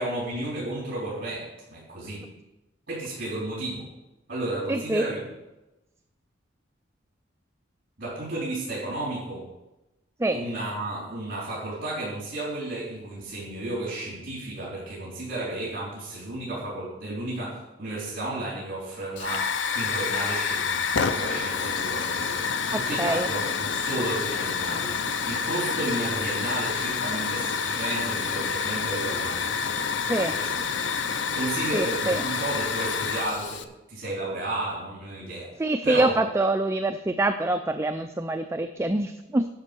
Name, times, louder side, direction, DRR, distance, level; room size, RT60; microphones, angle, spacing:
voice 1, 0.0-2.3 2.9-3.9 4.3-5.2 8.0-9.5 10.3-22.4 22.7-25.0 25.3-29.6 30.3-30.6 31.3-33.6 33.9-35.5 35.8-36.2, right 2 dB, 50° right, -6 dB, 4.0 m, -33 dB
voice 2, 4.7-5.0 10.2-10.4 22.7-23.3 30.1-30.3 31.7-32.2 35.6-39.5, right 2 dB, 15° right, 7 dB, 0.4 m, -25 dB
Hiss / Fire, 19.2-33.6, left 6 dB, 75° left, 0.6 m, -28 dB
11.5 x 5.4 x 6.8 m, 0.98 s
head